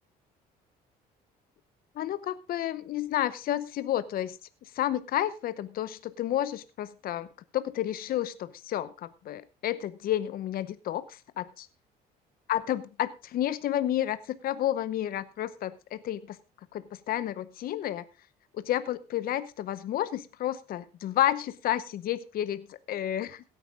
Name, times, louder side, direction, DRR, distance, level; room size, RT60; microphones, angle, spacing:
voice 1, 2.0-4.4 4.7-7.3 7.5-11.7 12.5-16.4 16.7-18.0 18.5-23.4, left 12 dB, 60° left, 14 dB, 0.8 m, -31 dB
16.5 x 9.2 x 3.7 m, 0.30 s
cardioid pair, 110°, 17 cm